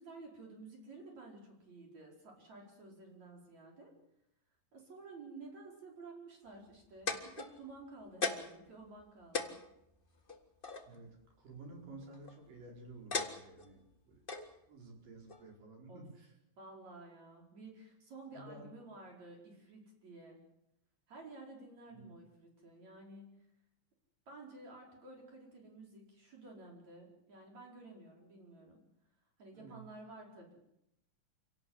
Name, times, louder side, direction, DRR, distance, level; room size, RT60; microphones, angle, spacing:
voice 1, 0.0-3.9 4.7-9.6 15.9-16.0 16.6-20.4 21.1-23.3 24.3-28.8 29.4-30.5, right 2 dB, 50° right, 0 dB, 5.9 m, -52 dB
sound 1, 6.7-7.8 8.2-8.6 9.0-9.1 9.3-10.9 11.9-12.4 13.1-13.7 14.3-14.5 15.3-15.4, left 4 dB, 35° left, 0.8 m, -37 dB
voice 2, 10.9-13.8 14.1-14.3 14.7-16.3 18.3-18.7 21.9-22.1 29.5-29.8, right 2 dB, 70° right, 1 dB, 6.6 m, -52 dB
27.0 x 17.5 x 8.0 m, 0.83 s
omnidirectional pair, 4.0 m